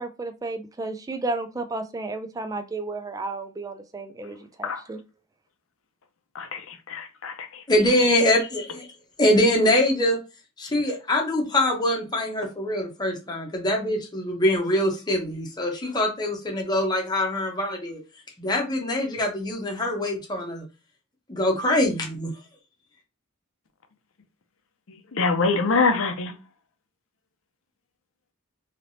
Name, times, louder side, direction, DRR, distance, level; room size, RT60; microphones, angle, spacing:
voice 1, 0.0-5.0, right 3 dB, 15° right, 0.3 m, -32 dB
voice 2, 6.9-7.3 25.1-26.3, left 4 dB, 70° left, 0.6 m, -23 dB
voice 3, 7.7-8.9 9.2-10.2 10.6-18.0 18.4-20.6 21.3-22.3, left 1 dB, 20° left, 0.8 m, -23 dB
3.3 x 2.9 x 2.6 m
head